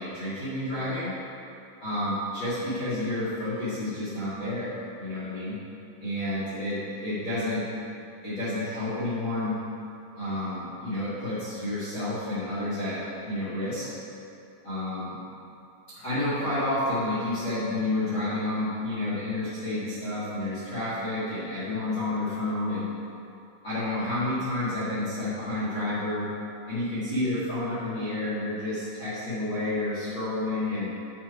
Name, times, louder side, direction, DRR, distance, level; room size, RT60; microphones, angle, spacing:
voice 1, 0.0-1.2 1.8-5.5 6.0-7.7 8.2-9.6 10.1-13.9 14.6-15.2 15.9-22.9 23.6-26.3 26.6-30.9, left 1 dB, 50° left, -12 dB, 1.5 m, -30 dB
11.5 x 4.6 x 4.8 m, 2.7 s
omnidirectional pair, 5.7 m